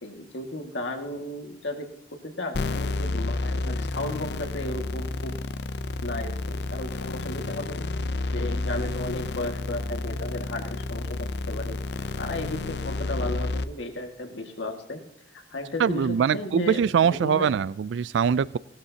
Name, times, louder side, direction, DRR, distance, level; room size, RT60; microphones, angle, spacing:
voice 1, 0.0-1.9 2.2-5.4 6.0-7.8 8.2-11.8 12.2-15.0 15.3-17.5, left 2 dB, 80° left, 1.9 m, -34 dB
sound 1, 2.5-13.6, left 2 dB, 65° left, 0.6 m, -30 dB
voice 2, 15.8-18.6, right 7 dB, 80° right, 0.3 m, -23 dB
18.0 x 13.0 x 2.8 m
head